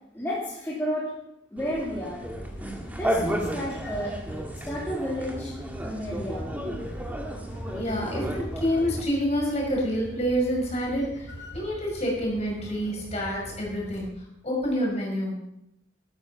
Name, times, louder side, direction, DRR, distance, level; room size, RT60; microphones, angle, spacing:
voice 1, 0.1-1.1 1.5-2.2 3.0-4.2 4.6-5.5 5.8-6.5, equal, 10° left, -8 dB, 3.1 m, -31 dB
sound 1, 1.6-9.0, equal, 10° right, 1.8 m, -33 dB
sound 2, 2.2-14.1, equal, 60° left, 3.1 m, -43 dB
voice 2, 7.7-14.1 14.4-15.3, equal, 35° left, -2 dB, 5.8 m, -28 dB
13.0 x 13.0 x 5.8 m, 0.82 s
head